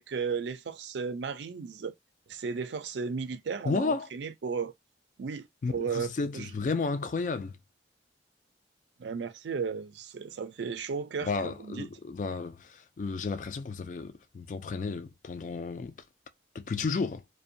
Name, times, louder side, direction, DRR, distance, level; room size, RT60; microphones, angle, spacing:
voice 1, 0.0-1.9 2.3-4.7 5.2-6.5 9.0-11.9, right 5 dB, 75° right, 0.4 m, -35 dB
voice 2, 3.6-4.1 5.6-7.6 11.2-16.0 16.5-17.2, left 4 dB, 45° left, 0.3 m, -32 dB
2.5 x 2.2 x 2.6 m
head